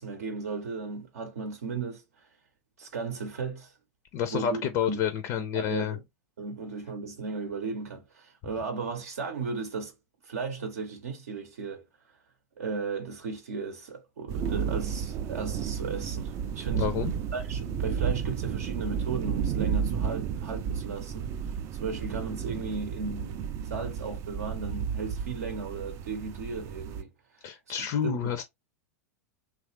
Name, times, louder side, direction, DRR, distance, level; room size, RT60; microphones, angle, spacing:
voice 1, 0.0-2.3 2.8-3.7 4.3-5.0 5.5-6.0 6.4-9.9 10.2-11.8 12.6-16.9 17.3-21.5 21.8-27.1 27.4-27.5 28.0-28.4, right 4 dB, 65° right, 0.7 m, -35 dB
voice 2, 4.1-6.0 16.7-17.1 27.4-28.4, left 9 dB, 40° left, 0.5 m, -29 dB
sound 1, 14.3-27.0, right 7 dB, 35° right, 0.4 m, -32 dB
3.0 x 2.4 x 3.0 m
figure-of-eight pair, 90°, 9 cm